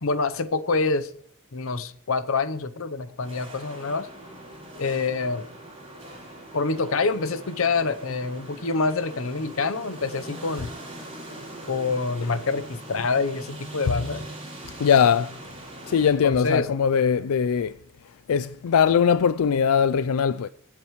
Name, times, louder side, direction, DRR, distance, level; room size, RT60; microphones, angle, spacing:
voice 1, 0.0-1.1 1.5-4.1 4.8-5.4 6.5-10.7 11.7-14.2 16.0-16.7, left 4 dB, 65° left, 0.8 m, -26 dB
sound 1, 3.2-16.1, right 1 dB, 25° right, 6.3 m, -41 dB
voice 2, 14.8-15.3 15.9-17.7 18.3-20.5, left 7 dB, 90° left, 0.4 m, -20 dB
23.5 x 8.6 x 3.1 m
head